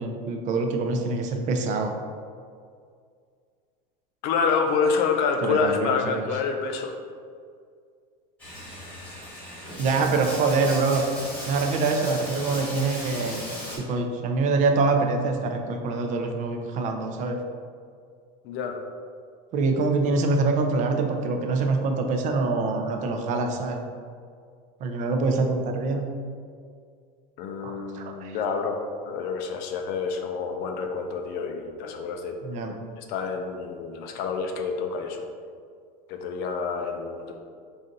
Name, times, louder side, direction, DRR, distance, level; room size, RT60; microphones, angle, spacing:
voice 1, 0.0-1.9 5.4-6.3 9.8-11.0 11.5-13.5 13.8-17.4 19.5-23.8 24.8-26.1 27.6-28.4 32.4-32.7, right 3 dB, 40° right, 4 dB, 0.5 m, -25 dB
voice 2, 4.2-6.9 18.4-18.8 27.4-32.4 33.0-35.2 36.1-37.3, left 5 dB, 50° left, 4 dB, 0.5 m, -28 dB
Bathtub (filling or washing), 8.4-13.8, equal, 10° left, 1.2 m, -37 dB
4.0 x 2.6 x 3.8 m, 2.1 s
supercardioid pair, 135°, 20 cm